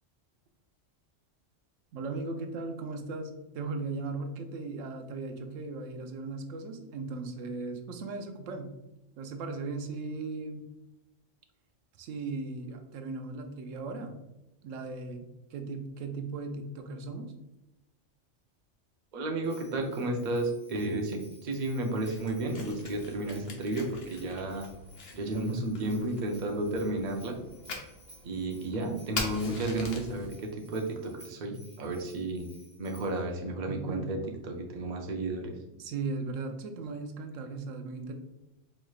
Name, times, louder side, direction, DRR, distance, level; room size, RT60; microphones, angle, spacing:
voice 1, 1.9-8.7 9.2-10.7 12.0-14.1 14.6-17.3 33.7-34.1 35.8-38.1, right 3 dB, 85° right, 6 dB, 0.9 m, -37 dB
voice 2, 19.1-24.7 25.1-27.4 28.2-32.5 32.8-34.2 34.4-35.5, right 2 dB, 50° right, 2 dB, 0.6 m, -32 dB
Bell, 19.4-33.2, equal, 25° right, 1.3 m, -58 dB
Fire, 21.9-30.3, left 3 dB, 55° left, 0.9 m, -43 dB
4.5 x 3.1 x 2.3 m, 0.97 s
omnidirectional pair, 1.3 m